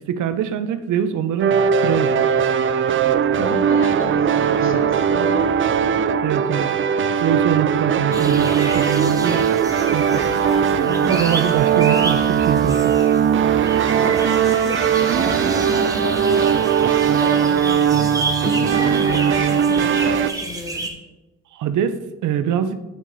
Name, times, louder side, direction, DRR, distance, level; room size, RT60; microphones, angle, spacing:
voice 1, 0.0-2.1 4.6-4.8 6.2-6.7 7.2-9.5 9.9-10.2 11.1-13.0 21.5-22.8, right 9 dB, 80° right, 11 dB, 0.7 m, -23 dB
sound 1, 1.4-20.3, right 8 dB, 40° right, 0.5 m, -19 dB
voice 2, 3.4-5.5 10.4-11.3 11.7-12.1 13.9-16.6 17.2-18.1 18.4-20.9, left 3 dB, 40° left, 4 dB, 1.7 m, -31 dB
sound 2, 8.1-20.9, right 2 dB, 10° right, 1.4 m, -31 dB
9.1 x 6.0 x 4.1 m, 1.1 s
cardioid pair, 90°, 30 cm